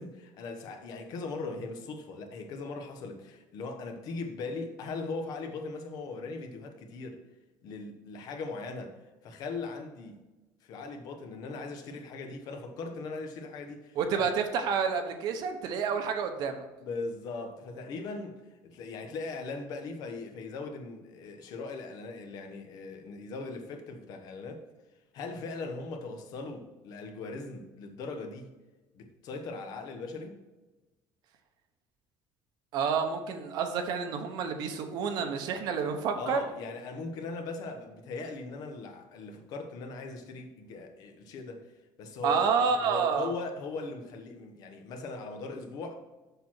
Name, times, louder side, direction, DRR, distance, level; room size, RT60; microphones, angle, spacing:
voice 1, 0.0-7.2 7.6-10.2 10.6-14.3 16.8-24.7 25.1-28.5 28.9-30.3 36.1-41.7 42.0-42.5 42.8-46.0, left 3 dB, 55° left, 1.1 m, -39 dB
voice 2, 13.9-16.6 32.7-36.4 42.2-43.3, right 6 dB, 60° right, 1.0 m, -29 dB
6.8 x 6.1 x 4.5 m
cardioid pair, 165°, 8 cm